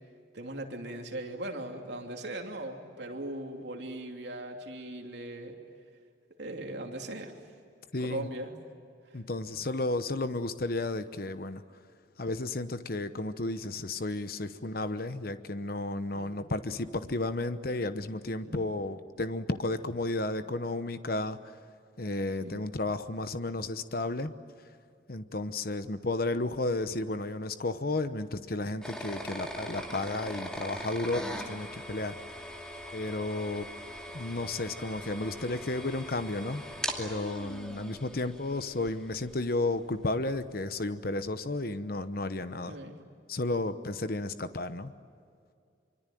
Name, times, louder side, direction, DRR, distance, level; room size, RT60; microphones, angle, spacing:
voice 1, 0.3-5.6 6.4-7.3 8.0-8.6 16.1-16.4 18.4-18.7 22.4-22.5 42.7-43.0, right 1 dB, 70° right, 2 dB, 3.0 m, -39 dB
voice 2, 7.9-8.3 9.1-11.6 12.2-21.5 22.0-24.3 25.1-32.5 32.9-33.7 34.1-36.6 37.0-42.8 43.3-44.9, left 2 dB, 50° left, 11 dB, 1.0 m, -33 dB
sound 1, 28.8-39.6, equal, 5° left, 2.6 m, -41 dB
25.0 x 24.5 x 9.2 m, 2.3 s
head